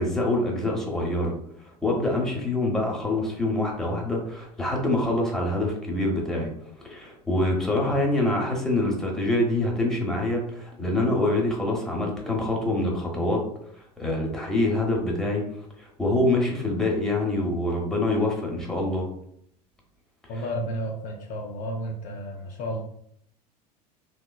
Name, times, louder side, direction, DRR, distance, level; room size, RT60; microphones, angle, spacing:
voice 1, 0.0-1.4 1.8-6.5 6.8-13.4 14.0-15.4 15.8-19.1, left 1 dB, ahead, -1 dB, 0.8 m, -25 dB
voice 2, 20.3-22.8, equal, 40° left, 1 dB, 0.4 m, -32 dB
2.9 x 2.2 x 2.2 m, 0.70 s
figure-of-eight pair, 80°, 21 cm